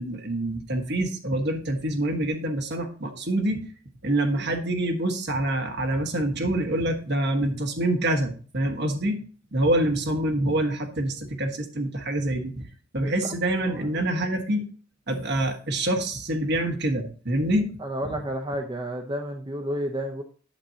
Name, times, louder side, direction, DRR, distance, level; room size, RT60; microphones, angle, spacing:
voice 1, 0.0-3.6 4.0-9.2 9.5-12.6 12.9-14.6 15.1-17.7, right 1 dB, 55° right, 4 dB, 1.3 m, -26 dB
voice 2, 13.7-14.0 17.8-20.2, equal, 25° right, 3 dB, 0.6 m, -31 dB
8.7 x 7.5 x 2.8 m, 0.41 s
head